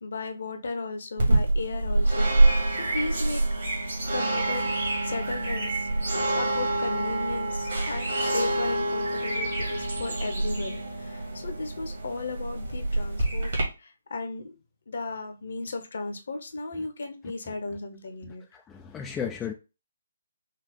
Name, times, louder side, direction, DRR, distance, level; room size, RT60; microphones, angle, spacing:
voice 1, 0.0-3.4 4.1-4.7 5.0-5.9 6.3-13.5 13.8-14.6 14.9-18.4, left 3 dB, 55° left, 1.0 m, -35 dB
sound 1, 1.2-13.6, right 2 dB, 55° right, 2.0 m, -26 dB
voice 2, 18.2-19.5, left 7 dB, 10° left, 0.4 m, -35 dB
5.7 x 2.4 x 3.7 m
figure-of-eight pair, 140°, 0 cm